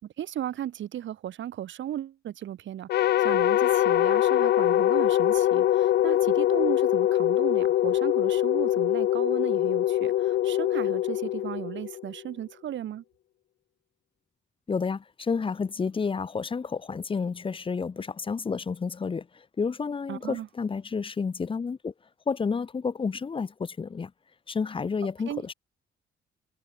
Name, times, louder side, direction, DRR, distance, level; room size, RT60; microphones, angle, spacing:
voice 1, 0.0-13.0 20.1-20.5 25.3-25.4, right 11 dB, 70° right, 3.1 m, -35 dB
sound 1, 2.9-12.2, left 13 dB, 55° left, 0.4 m, -23 dB
voice 2, 14.7-21.9 22.3-24.1 24.5-25.5, left 5 dB, 25° left, 0.7 m, -30 dB
cardioid pair, 90°, 20 cm